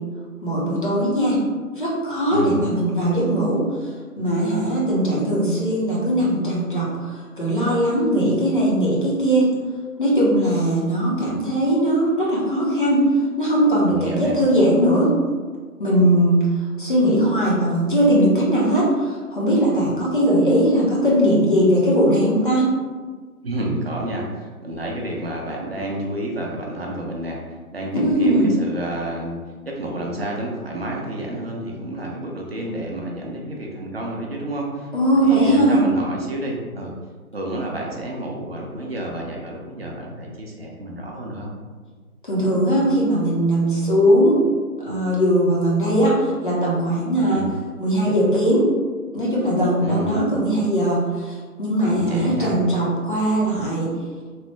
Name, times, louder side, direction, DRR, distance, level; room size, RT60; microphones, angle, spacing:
voice 1, 0.4-1.4 1.8-3.6 4.2-9.5 10.0-13.1 13.4-15.1 15.8-16.5 16.8-22.7 27.9-28.5 34.9-35.8 42.2-44.4 44.8-47.5 47.8-48.7 49.1-53.9, right 1 dB, 35° left, -5 dB, 0.6 m, -19 dB
voice 2, 13.9-14.4 23.4-27.4 27.7-29.4 29.6-36.9 37.3-41.5 47.3-47.5 49.8-50.2 51.9-52.5, right 1 dB, 45° right, -2 dB, 0.5 m, -30 dB
3.1 x 2.1 x 3.1 m, 1.5 s
figure-of-eight pair, 150°, 45 cm